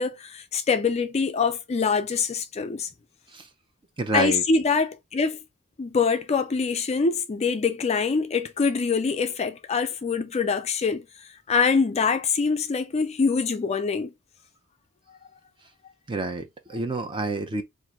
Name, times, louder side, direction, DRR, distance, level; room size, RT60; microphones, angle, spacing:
voice 1, 0.0-2.9 4.1-5.4 5.8-14.1, left 5 dB, 30° left, 0.3 m, -24 dB
voice 2, 4.0-4.4 16.1-17.6, right 2 dB, 20° right, 0.5 m, -28 dB
3.6 x 2.6 x 2.8 m
head